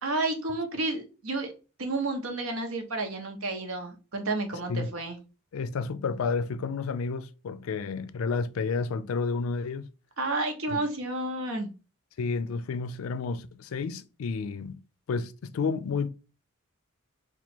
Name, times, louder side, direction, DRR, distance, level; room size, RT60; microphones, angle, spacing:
voice 1, 0.0-1.5 1.8-5.2 10.2-11.7, right 2 dB, 90° right, 0.9 m, -31 dB
voice 2, 5.5-9.9 10.7-10.8 12.2-14.8 15.1-16.1, left 4 dB, 85° left, 0.4 m, -31 dB
2.9 x 2.4 x 4.2 m
head